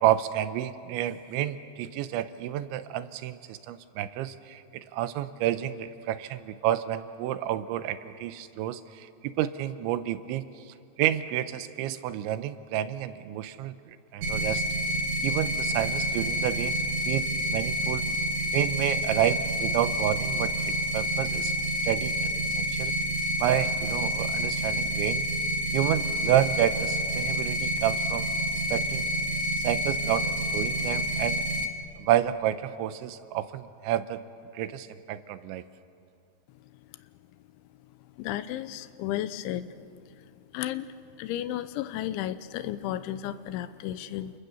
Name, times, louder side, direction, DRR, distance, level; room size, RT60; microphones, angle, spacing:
voice 1, 0.0-10.5 11.0-14.6 15.2-18.1 18.5-22.9 23.4-25.3 25.7-28.3 28.7-29.1 29.6-31.5 32.0-34.2 34.5-35.6, right 12 dB, 85° right, 12 dB, 3.2 m, -30 dB
sound 1, 14.2-31.7, equal, 70° right, 3.9 m, -28 dB
voice 2, 38.2-39.7 40.5-40.9 41.2-44.3, left 12 dB, 85° left, 13 dB, 3.2 m, -33 dB
29.5 x 27.5 x 7.0 m, 2.4 s
omnidirectional pair, 5.3 m